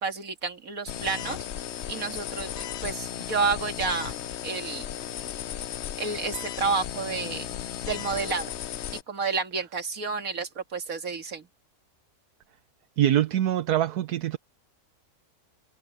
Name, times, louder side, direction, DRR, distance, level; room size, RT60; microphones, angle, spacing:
voice 1, 0.0-1.5 1.9-4.2 4.4-4.9 6.0-7.5 7.9-8.5 9.1-11.5, right 4 dB, 60° right, 2.3 m, -30 dB
sound 1, 0.9-9.0, left 10 dB, 60° left, 0.7 m, -35 dB
voice 2, 13.0-14.4, right 11 dB, 80° right, 1.4 m, -24 dB
omnidirectional pair, 1.7 m